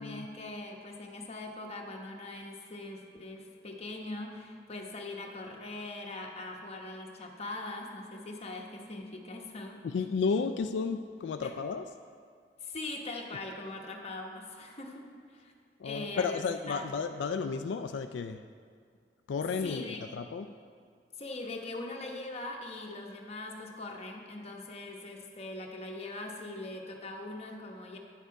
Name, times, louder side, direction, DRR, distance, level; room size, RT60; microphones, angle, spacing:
voice 1, 0.0-9.8 11.4-11.5 12.6-15.5 15.8-16.4 16.7-16.8 19.6-20.0 21.2-28.0, left 2 dB, 35° left, 1 dB, 1.0 m, -41 dB
voice 2, 9.8-11.8 15.8-18.4 19.3-20.5, left 5 dB, 85° left, 7 dB, 0.3 m, -32 dB
10.0 x 6.6 x 4.6 m, 2.2 s
head